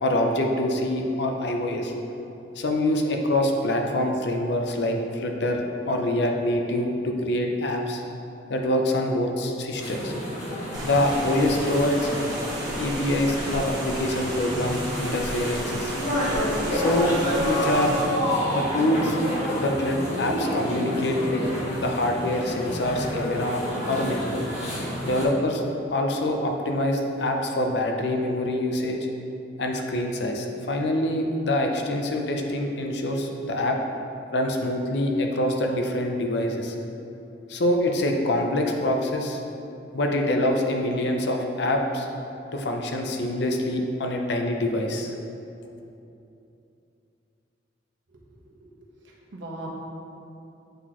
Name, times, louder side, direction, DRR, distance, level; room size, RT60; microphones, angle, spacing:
voice 1, 0.0-1.9 2.6-8.0 8.5-10.1 10.8-12.1 12.8-15.9 16.7-17.1 17.4-18.0 18.5-19.2 19.6-21.4 21.8-23.6 23.9-24.4 25.0-25.6 25.9-29.0 29.6-33.8 34.3-36.8 37.5-39.4 39.9-42.1 42.5-45.1, left 1 dB, 65° left, 2 dB, 0.6 m, -25 dB
sound 1, 9.8-25.2, equal, 40° left, 1.4 m, -29 dB
sound 2, 10.7-18.0, right 1 dB, 25° right, 1.4 m, -34 dB
voice 2, 48.1-49.7, right 2 dB, 80° right, -2 dB, 1.0 m, -42 dB
7.8 x 4.0 x 3.0 m, 2.8 s
head